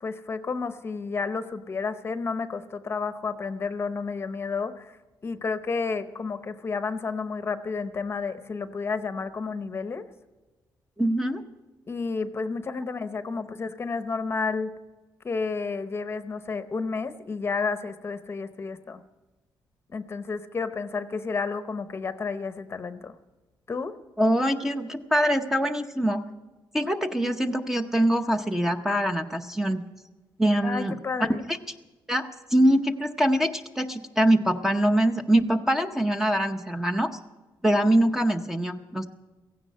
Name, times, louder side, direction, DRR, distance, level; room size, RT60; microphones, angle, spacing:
voice 1, 0.0-5.0 5.2-10.0 11.9-14.7 15.2-19.0 19.9-23.2 23.7-23.9 30.6-31.4, left 4 dB, 30° left, 11 dB, 0.8 m, -31 dB
voice 2, 11.0-11.4 24.2-26.2 26.7-29.8 30.4-31.0 31.5-31.6 32.1-37.2 37.6-39.1, right 1 dB, 5° right, 6 dB, 0.8 m, -24 dB
16.5 x 16.0 x 5.5 m, 1.2 s
wide cardioid pair, 165°, 8 cm